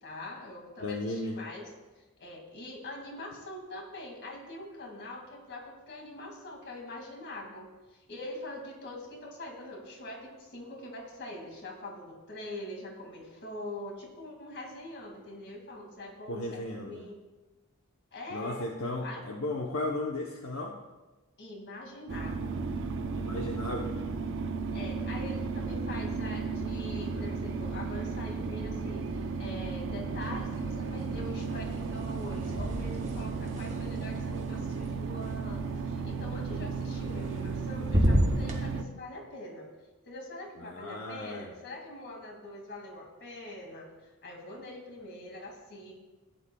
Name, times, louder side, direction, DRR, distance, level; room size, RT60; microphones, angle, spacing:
voice 1, 0.0-1.7 2.0-17.2 18.1-18.7 19.0-19.2 21.4-22.5 24.7-39.7 40.0-43.9 44.2-45.9, left 1 dB, 55° left, 1 dB, 2.2 m, -43 dB
voice 2, 0.8-1.4 16.3-17.0 18.3-20.7 23.1-24.0 40.6-41.5, left 2 dB, 75° left, 0 dB, 0.9 m, -35 dB
sound 1, 22.1-38.8, right 4 dB, 60° right, 0.7 m, -34 dB
sound 2, 30.2-30.9 31.2-35.3 36.9-37.5 37.8-38.6, equal, 35° right, 1.7 m, -31 dB
15.5 x 10.0 x 2.3 m, 1.2 s
head